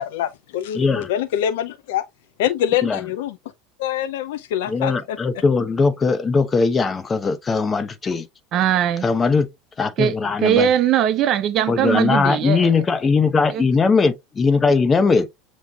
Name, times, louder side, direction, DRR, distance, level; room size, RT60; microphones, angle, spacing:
voice 1, 0.0-2.0 2.4-3.4 3.8-5.2, left 10 dB, 75° left, 0.5 m, -24 dB
voice 2, 0.7-1.1 2.8-3.0 4.7-8.3 9.0-9.5 9.8-10.7 11.7-15.3, left 4 dB, 25° left, 0.9 m, -19 dB
voice 3, 8.5-9.1 10.0-12.8 13.5-13.7, right 10 dB, 45° right, 0.8 m, -20 dB
7.0 x 3.1 x 2.3 m
supercardioid pair, 105°, 0 cm